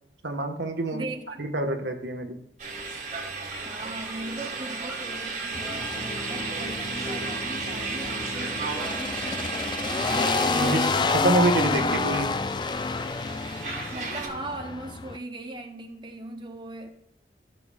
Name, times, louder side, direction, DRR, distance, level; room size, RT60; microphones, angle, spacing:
voice 1, 0.2-1.0 1.4-2.4 10.1-12.3, right 2 dB, 90° right, 1.3 m, -27 dB
voice 2, 0.9-1.5 3.6-9.5 13.9-16.9, right 2 dB, 25° right, 0.8 m, -39 dB
sound 1, 2.6-14.3, right 4 dB, 40° right, 1.8 m, -34 dB
Telephone, 3.2-6.5 7.8-9.3 9.8-11.4, equal, 5° right, 3.4 m, -46 dB
sound 2, 5.5-15.2, left 4 dB, 25° left, 0.3 m, -29 dB
15.0 x 6.9 x 2.4 m
head